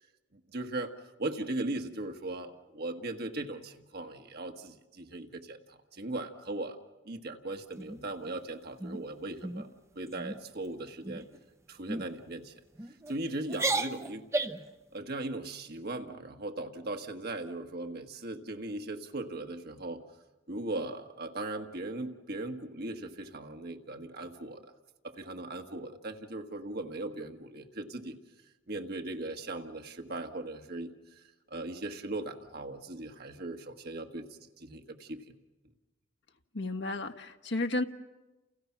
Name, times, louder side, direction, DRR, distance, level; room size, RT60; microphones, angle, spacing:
voice 1, 0.3-0.9 1.2-6.8 7.0-9.7 9.9-11.3 11.7-12.5 13.1-14.2 14.9-20.0 20.5-24.7 25.0-28.2 28.7-30.9 31.5-35.4, right 2 dB, 55° right, 5 dB, 1.7 m, -38 dB
sound 1, 7.8-8.4 8.8-9.0 9.4-9.7 10.1-10.4 11.0-11.4 11.9-12.1 12.8-13.1 13.5-14.7, right 2 dB, 15° right, 0.8 m, -34 dB
voice 2, 36.5-37.8, left 2 dB, 65° left, 5 dB, 1.3 m, -32 dB
30.0 x 29.5 x 6.0 m, 1.1 s
head